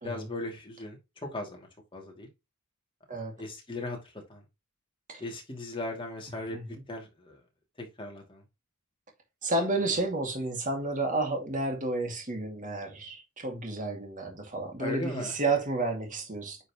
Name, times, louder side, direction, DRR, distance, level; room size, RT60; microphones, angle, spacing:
voice 1, 0.0-2.3 3.4-4.4 5.2-6.6 6.9-7.4 7.8-8.4 9.8-10.0 14.8-15.3, left 2 dB, 25° left, 2.5 m, -38 dB
voice 2, 9.4-16.6, right 2 dB, 35° right, 2.4 m, -31 dB
9.5 x 4.4 x 3.0 m
head